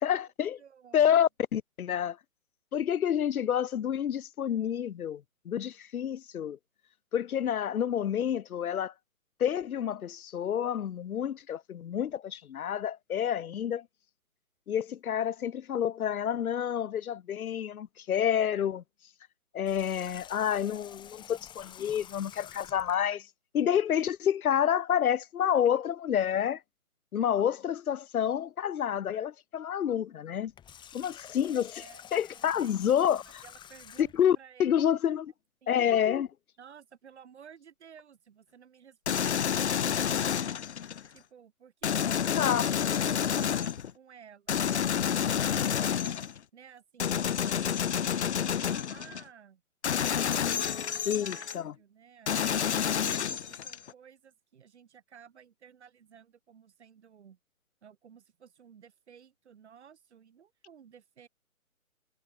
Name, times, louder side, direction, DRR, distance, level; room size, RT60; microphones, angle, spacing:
voice 1, 0.0-0.6 0.9-2.2 2.7-6.6 7.1-8.9 9.4-13.9 14.7-18.8 19.5-23.3 23.5-26.6 27.1-30.5 30.9-31.8 32.1-33.4 34.0-35.3 35.7-36.3 42.3-42.7 51.1-51.7, left 9 dB, 85° left, 0.6 m, -29 dB
voice 2, 0.6-1.2 31.8-32.0 32.3-32.7 33.4-34.7 35.6-36.0 36.6-40.5 41.1-42.8 43.2-45.8 46.5-49.6 50.2-52.9 53.5-57.4 57.8-61.3, right 8 dB, 50° right, 6.0 m, -54 dB
Water tap faucet, 19.6-23.0 30.4-34.3, left 9 dB, 10° left, 5.0 m, -49 dB
sound 1, 39.1-41.1 41.8-43.9 44.5-46.4 47.0-49.2 49.8-51.6 52.3-53.9, left 8 dB, 50° left, 0.9 m, -29 dB
figure-of-eight pair, 145°, 42 cm